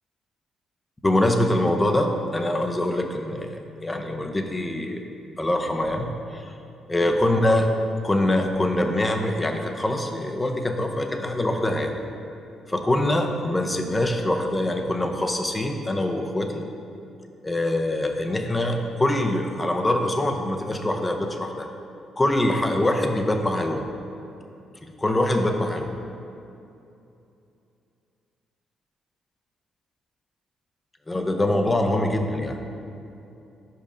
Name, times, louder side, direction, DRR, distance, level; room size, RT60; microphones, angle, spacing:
voice 1, 1.0-5.0 5.4-6.5 6.9-7.7 8.0-12.0 12.7-16.6 17.4-21.7 22.2-23.9 24.8-26.0 31.1-32.6, left 1 dB, 15° left, 4 dB, 0.7 m, -24 dB
5.3 x 5.1 x 5.1 m, 2.7 s
cardioid pair, 90°, 0 cm